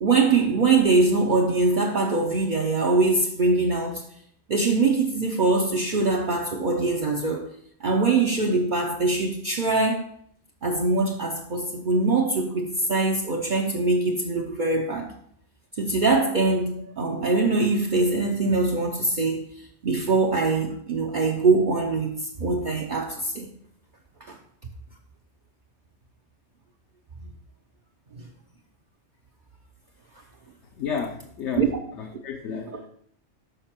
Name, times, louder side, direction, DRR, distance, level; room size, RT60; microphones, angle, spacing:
voice 1, 0.0-4.0 4.5-7.5 7.8-10.1 10.6-15.1 15.8-19.4 19.8-23.5 24.3-24.4 27.2-27.3 28.2-28.3 31.5-31.7 32.1-32.2, right 3 dB, 45° right, 0.8 m, -23 dB
voice 2, 30.8-32.7, left 6 dB, 70° left, 1.0 m, -32 dB
6.7 x 5.6 x 4.3 m
omnidirectional pair, 1.3 m